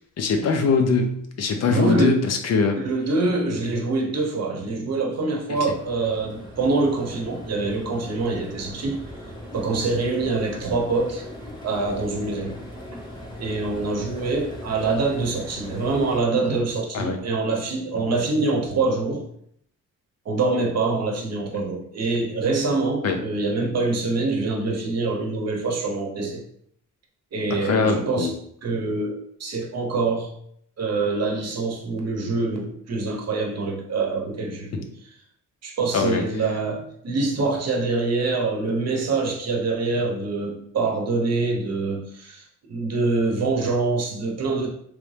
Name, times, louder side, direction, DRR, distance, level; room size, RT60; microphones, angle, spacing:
voice 1, 0.2-2.8 3.6-3.7 5.5-5.6 16.9-17.2 23.0-23.2 27.5-28.3 34.7-34.8 35.9-36.2, left 4 dB, 55° left, 5 dB, 0.6 m, -22 dB
voice 2, 1.7-2.2 2.8-9.0 9.5-11.2 11.6-12.6 13.4-19.2 20.3-26.4 27.3-28.3 28.6-30.3 30.8-34.9 35.6-44.7, right 3 dB, 50° right, 0 dB, 0.8 m, -25 dB
sound 1, 5.6-16.2, equal, 15° left, 1.0 m, -39 dB
3.2 x 2.6 x 3.2 m, 0.67 s
cardioid pair, 115°, 32 cm